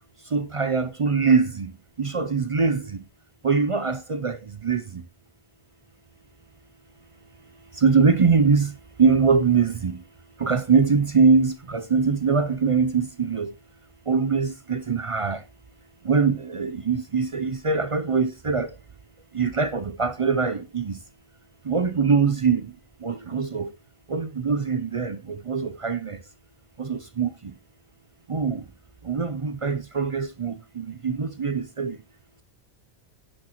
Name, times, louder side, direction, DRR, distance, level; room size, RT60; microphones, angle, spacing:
voice 1, 0.3-1.7 2.0-2.8 3.4-4.4 4.6-4.8 7.8-8.7 9.0-10.0 10.4-13.5 14.1-15.4 16.1-18.7 19.3-20.9 21.7-22.6 23.0-23.7 24.1-25.2 25.5-26.2 26.8-27.3 28.3-28.6 29.1-32.0, right 5 dB, 40° right, 0.5 m, -22 dB
10.5 x 6.4 x 3.0 m
omnidirectional pair, 1.1 m